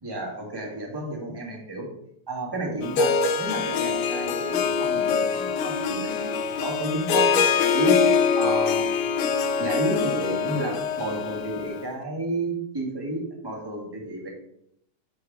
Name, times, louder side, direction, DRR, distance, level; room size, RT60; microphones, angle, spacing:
voice 1, 0.0-1.9 2.3-6.3 6.6-8.0 8.3-8.9 9.6-14.3, right 1 dB, 15° right, -1 dB, 0.9 m, -31 dB
Harp, 2.8-11.8, left 6 dB, 90° left, 2.3 m, -24 dB
6.5 x 4.8 x 6.0 m, 0.75 s
omnidirectional pair, 3.4 m